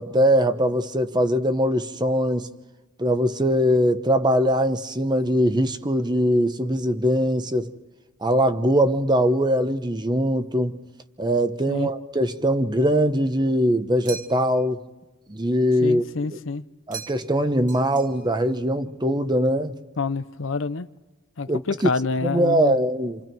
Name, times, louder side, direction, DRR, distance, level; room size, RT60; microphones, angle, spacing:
voice 1, 0.0-2.5 3.0-7.7 8.2-10.8 11.2-14.8 15.3-16.4 16.9-19.7 21.5-21.9 22.2-23.2, equal, 20° right, 1.0 m, -22 dB
sound 1, 14.1-14.7 16.9-17.4 17.7-18.4, right 6 dB, 40° right, 1.5 m, -40 dB
voice 2, 15.8-16.6 20.0-20.9 21.4-22.8, left 4 dB, 70° left, 0.8 m, -27 dB
28.5 x 27.0 x 4.7 m
head